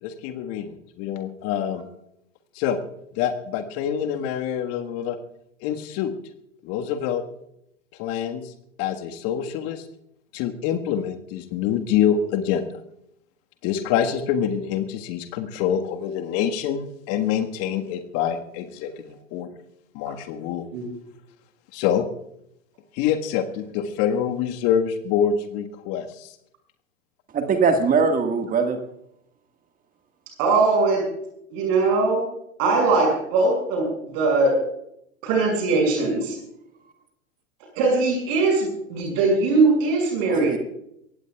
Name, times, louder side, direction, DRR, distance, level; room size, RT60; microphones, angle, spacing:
voice 1, 0.0-1.8 2.5-2.8 3.1-5.2 5.6-6.1 6.6-7.2 8.0-8.4 8.8-9.8 10.3-12.7 13.6-19.5 19.9-20.7 21.7-22.1 22.9-26.3, left 9 dB, 35° left, 6 dB, 1.6 m, -26 dB
voice 2, 27.3-28.8 40.3-40.6, right 5 dB, 20° right, 6 dB, 1.7 m, -21 dB
voice 3, 30.4-31.0 31.5-32.2 32.6-33.9 34.1-34.6 35.2-36.3 37.7-40.6, right 3 dB, 40° right, 1 dB, 6.4 m, -20 dB
24.0 x 17.0 x 2.4 m, 0.76 s
figure-of-eight pair, 105°, 41 cm